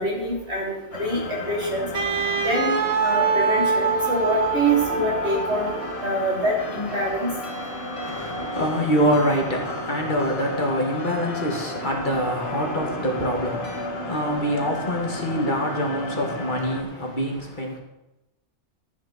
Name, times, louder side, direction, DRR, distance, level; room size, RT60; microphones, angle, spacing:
voice 1, 0.0-1.9 2.4-2.7 3.0-7.3, right 1 dB, 65° right, -4 dB, 4.3 m, -25 dB
sound 1, 0.9-16.8, left 2 dB, 60° left, 1.6 m, -34 dB
Wind instrument woodwind instrument, 1.9-6.0, right 5 dB, 35° right, 1.0 m, -24 dB
sound 2, 4.3-13.8, equal, 25° left, 3.6 m, -39 dB
voice 2, 8.0-17.8, equal, 40° left, 0 dB, 2.2 m, -25 dB
14.5 x 9.1 x 4.4 m, 0.94 s
omnidirectional pair, 1.2 m